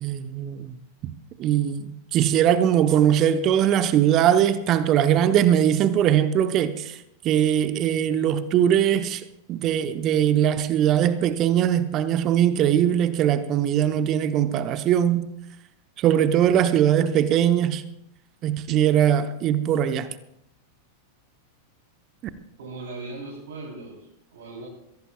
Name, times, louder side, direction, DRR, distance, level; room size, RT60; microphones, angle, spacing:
voice 1, 0.0-0.8 1.0-1.1 1.4-7.0 7.2-9.2 9.5-15.3 16.0-17.8 18.4-20.1, right 10 dB, 35° right, 0.9 m, -21 dB
voice 2, 22.6-24.7, right 3 dB, 60° right, 3.6 m, -38 dB
23.5 x 16.5 x 2.3 m
figure-of-eight pair, 90°, 0 cm